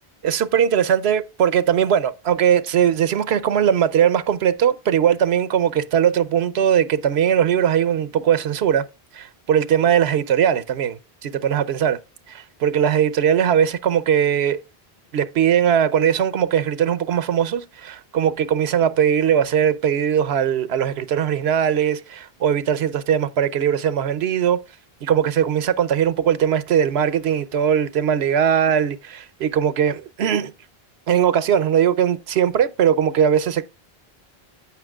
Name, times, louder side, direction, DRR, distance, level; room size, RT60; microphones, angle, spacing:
voice 1, 0.2-8.8 9.1-12.0 12.3-14.6 15.1-24.6 25.0-30.5 31.1-33.6, right 9 dB, 85° right, 1.0 m, -20 dB
15.0 x 5.7 x 2.3 m
omnidirectional pair, 1.0 m